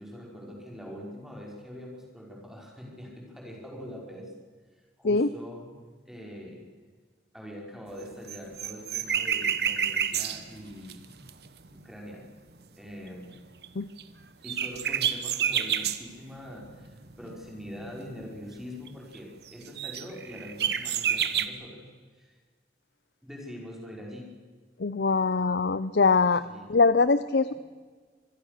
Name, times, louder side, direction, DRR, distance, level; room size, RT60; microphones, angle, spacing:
voice 1, 0.0-4.3 4.7-6.7 7.3-11.3 11.7-12.3 12.8-13.4 14.4-22.4 23.2-24.3 26.4-26.7 27.5-27.6, equal, ahead, -1 dB, 5.0 m, -43 dB
sound 1, 8.0-11.8 13.6-13.7 14.0-14.1 14.4-16.0 16.6-18.4 18.7-18.9 19.1-19.2 19.5-21.5, right 8 dB, 70° right, 1.3 m, -29 dB
voice 2, 24.8-26.4 26.7-27.5, left 4 dB, 75° left, 14 dB, 0.7 m, -22 dB
25.5 x 22.0 x 6.7 m, 1.5 s
head